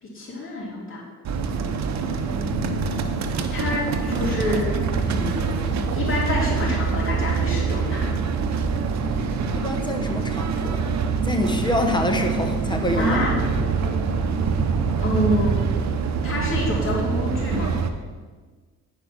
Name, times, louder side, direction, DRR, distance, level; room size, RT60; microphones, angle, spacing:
voice 1, 0.0-1.0 2.0-2.1 3.5-4.7 5.0-8.2 13.0-13.3 15.0-15.6 16.2-17.7, left 2 dB, 45° left, -4 dB, 3.2 m, -27 dB
sound 1, 1.3-17.9, right 5 dB, 65° right, 0.9 m, -25 dB
sound 2, 2.2-10.9, left 1 dB, ahead, 1.6 m, -36 dB
voice 2, 9.5-10.8 11.2-13.2, left 1 dB, 15° left, 3 dB, 1.3 m, -26 dB
9.7 x 5.2 x 6.1 m, 1.4 s
cardioid pair, 90°, 30 cm